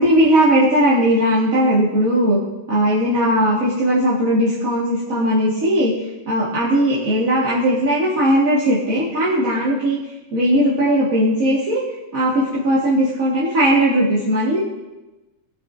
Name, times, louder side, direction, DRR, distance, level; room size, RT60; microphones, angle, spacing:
voice 1, 0.0-2.4 2.7-5.9 6.3-10.0 10.3-11.8 12.1-14.6, equal, 85° right, -8 dB, 2.3 m, -18 dB
20.0 x 8.6 x 2.6 m, 1.1 s
omnidirectional pair, 1.4 m